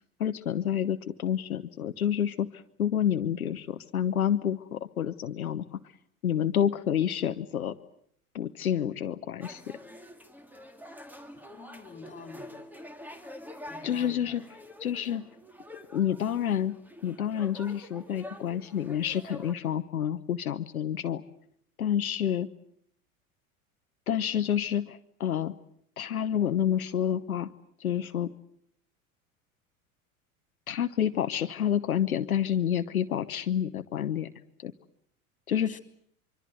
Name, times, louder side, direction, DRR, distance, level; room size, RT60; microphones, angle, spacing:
voice 1, 0.2-5.6 6.2-7.7 8.3-9.8 13.8-14.4 14.8-15.2 15.9-21.2 21.8-22.5 24.1-25.5 26.0-27.5 27.8-28.3 30.7-34.3 34.6-34.7 35.5-35.8, left 9 dB, 75° left, 9 dB, 1.0 m, -29 dB
sound 1, 9.4-19.5, left 1 dB, 5° right, 2.2 m, -46 dB
voice 2, 11.5-12.5 13.7-14.4 35.7-35.8, left 4 dB, 15° left, 7 dB, 4.0 m, -48 dB
25.0 x 24.5 x 8.1 m, 0.68 s
figure-of-eight pair, 80°, 43 cm